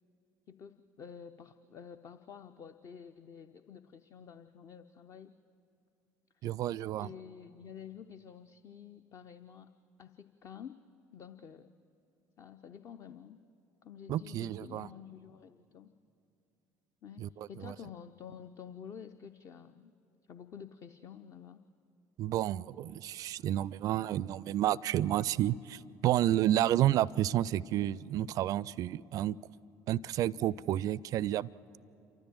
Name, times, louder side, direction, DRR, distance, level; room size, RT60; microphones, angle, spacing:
voice 1, 0.5-5.3 6.3-6.6 7.0-9.7 10.0-10.8 11.1-11.7 12.4-13.4 13.8-15.9 17.0-19.9 20.3-21.6, left 8 dB, 40° left, 9 dB, 0.6 m, -50 dB
voice 2, 6.4-7.1 14.1-14.9 17.2-17.3 17.6-17.7 22.2-29.4 29.9-31.5, right 12 dB, 45° right, 23 dB, 0.4 m, -30 dB
28.5 x 13.5 x 7.6 m, 2.7 s
figure-of-eight pair, 60°, 8 cm